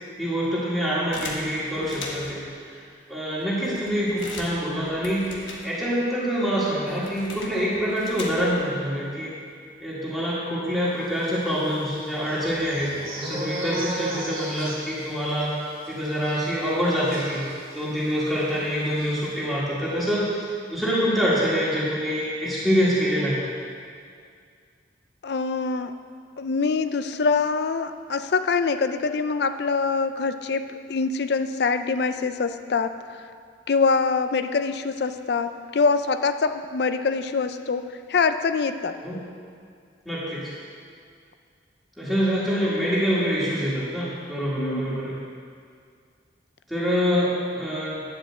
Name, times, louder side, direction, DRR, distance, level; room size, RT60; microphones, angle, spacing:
voice 1, 0.2-2.4 2.7-2.8 3.1-5.3 5.6-9.3 9.8-15.5 15.9-17.4 17.7-23.4 39.0-39.2 40.0-40.5 42.0-45.2 46.7-48.0, equal, ahead, -10 dB, 1.8 m, -25 dB
sound 1, 1.1-2.5 3.1-3.2 3.4-6.1 6.3-8.7, left 2 dB, 85° left, 1.4 m, -39 dB
sound 2, 11.4-18.1 18.4-18.6 18.9-19.1, right 1 dB, 25° right, 2.2 m, -36 dB
voice 2, 25.2-26.0 26.4-33.2 33.7-39.0 44.6-45.0, left 4 dB, 60° left, 10 dB, 0.4 m, -24 dB
10.5 x 5.0 x 7.5 m, 2.2 s
head